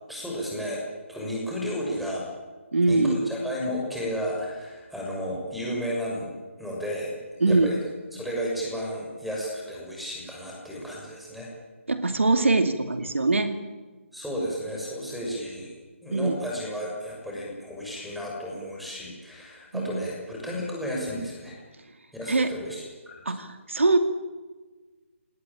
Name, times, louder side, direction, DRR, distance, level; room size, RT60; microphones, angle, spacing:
voice 1, 0.1-0.8 1.1-2.2 2.8-6.3 6.6-7.2 7.5-7.8 8.1-11.5 14.1-15.7 16.0-21.6 22.1-23.4, equal, ahead, -2 dB, 6.5 m, -33 dB
voice 2, 2.7-3.2 7.4-7.7 11.9-13.5 16.1-16.3 19.7-20.0 22.3-22.5 23.3-24.0, right 3 dB, 65° right, 8 dB, 2.3 m, -22 dB
30.0 x 19.0 x 8.9 m, 1.3 s
figure-of-eight pair, 145°, 7 cm